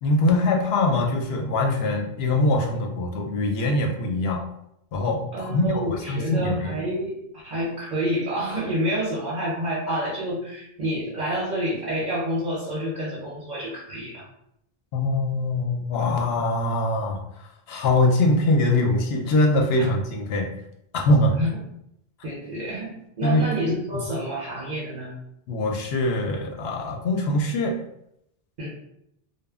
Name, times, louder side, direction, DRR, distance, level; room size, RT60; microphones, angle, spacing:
voice 1, 0.0-4.4 4.9-6.8 14.9-17.2 17.7-20.5 20.9-21.4 23.2-23.4 23.9-24.0 25.5-27.8, left 2 dB, 80° left, 1 dB, 0.8 m, -23 dB
voice 2, 5.3-7.2 7.4-14.3 16.1-16.2 19.8-19.9 21.3-21.6 22.2-22.9 23.2-25.1 28.6-28.7, equal, 50° right, -5 dB, 0.8 m, -28 dB
2.1 x 2.0 x 3.4 m, 0.77 s
omnidirectional pair, 1.0 m